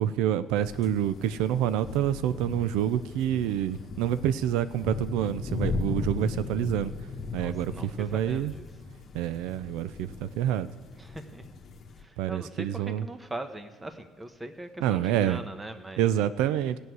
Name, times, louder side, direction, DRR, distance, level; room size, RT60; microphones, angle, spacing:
voice 1, 0.0-6.9 7.3-8.5 9.1-10.7 12.2-13.0 14.8-15.4 16.0-16.8, right 11 dB, 85° right, 14 dB, 0.4 m, -27 dB
sound 1, 0.6-12.0, left 3 dB, 40° left, 1.3 m, -37 dB
voice 2, 7.4-8.7 11.0-11.5 12.0-16.0, right 1 dB, 15° right, 8 dB, 1.1 m, -41 dB
15.5 x 6.4 x 9.3 m, 1.4 s
cardioid pair, 115°, 0 cm